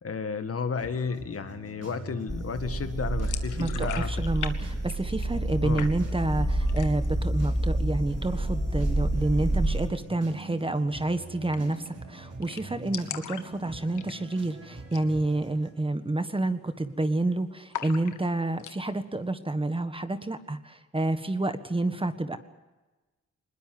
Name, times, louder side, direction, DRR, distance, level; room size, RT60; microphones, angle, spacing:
voice 1, 0.0-4.1 5.6-5.9, left 5 dB, 50° left, 9 dB, 1.9 m, -32 dB
sound 1, 0.7-15.7, right 3 dB, 55° right, 5.9 m, -45 dB
sound 2, 2.3-9.9, right 1 dB, ahead, 3.4 m, -28 dB
sound 3, 3.2-4.5 4.8-5.5 5.8-6.3 6.7-7.2 7.5-7.6 8.0-8.6 10.3-10.4 10.8-10.9 11.1-11.2 11.5-11.9 12.1-12.2 12.4-14.5 14.8-15.1 15.4-15.5 16.1-16.4 16.6-17.2 17.7-18.8, left 10 dB, 90° left, 1.5 m, -40 dB
voice 2, 3.6-22.4, right 2 dB, 20° right, 10 dB, 1.5 m, -29 dB
21.0 x 20.5 x 7.8 m, 1.2 s
cardioid pair, 70°, 30 cm